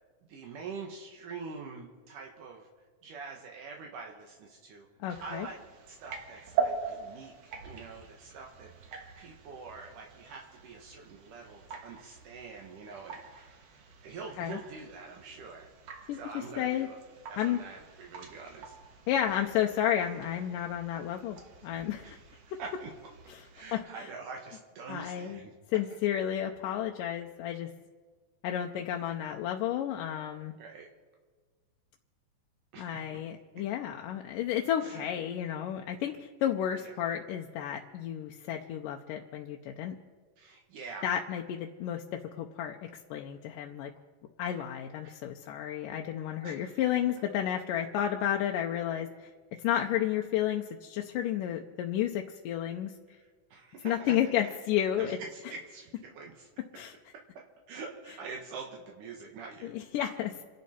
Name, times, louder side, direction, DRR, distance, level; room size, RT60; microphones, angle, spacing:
voice 1, 0.3-2.7 3.0-4.9 5.2-5.6 5.9-13.6 14.0-15.7 16.1-17.0 17.3-18.7 22.0-22.2 22.5-22.9 23.5-25.5 30.6-30.9 32.7-33.2 34.8-35.1 36.7-36.9 40.4-41.1 45.0-45.2 46.4-46.9 53.2-54.1 55.0-56.5 57.1-59.7, right 4 dB, 75° right, 1 dB, 2.9 m, -45 dB
voice 2, 5.0-5.5 14.4-14.6 16.1-16.9 17.4-17.6 19.1-21.4 21.6-22.2 22.5-22.6 23.3-23.4 23.7-23.9 24.9-25.4 25.7-27.7 28.4-30.5 32.8-40.0 41.0-43.9 44.4-49.3 49.6-52.9 53.8-55.2 56.8-56.9 59.6-60.4, left 10 dB, 85° left, 2 dB, 2.4 m, -32 dB
sound 1, 5.1-23.8, right 6 dB, 55° right, 2.3 m, -42 dB
28.0 x 11.5 x 4.4 m, 1.5 s
omnidirectional pair, 3.8 m